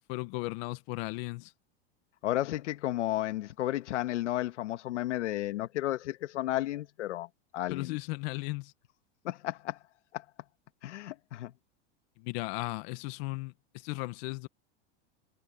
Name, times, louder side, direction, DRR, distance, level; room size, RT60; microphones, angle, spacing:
voice 1, 0.1-1.5 7.7-8.7 12.2-14.5, left 24 dB, 60° left, 1.4 m, -36 dB
voice 2, 2.2-7.3 7.5-8.0 9.2-9.8 10.1-10.2 10.8-11.5, left 15 dB, 85° left, 1.7 m, -33 dB
supercardioid pair, 125°, 35 cm